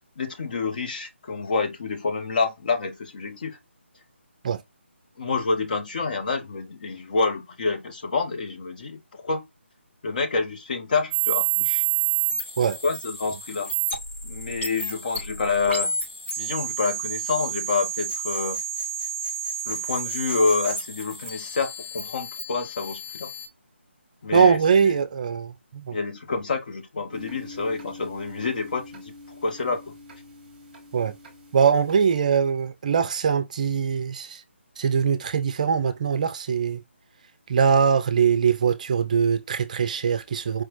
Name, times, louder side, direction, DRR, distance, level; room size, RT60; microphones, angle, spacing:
voice 1, 0.2-3.6 5.2-9.5 10.0-11.8 12.8-13.7 14.2-15.9 16.4-18.6 19.7-23.3 24.2-25.0 25.9-29.1 29.4-29.9, left 4 dB, 45° left, 0.9 m, -28 dB
sound 1, 11.1-23.5, right 7 dB, 75° left, 3.3 m, -30 dB
voice 2, 24.3-26.0 30.9-31.1 31.5-34.4 34.8-36.8 37.5-40.6, right 6 dB, 35° right, 0.5 m, -22 dB
sound 2, 27.1-32.2, left 2 dB, 10° right, 1.6 m, -44 dB
4.7 x 3.0 x 2.9 m
figure-of-eight pair, 150°, 7 cm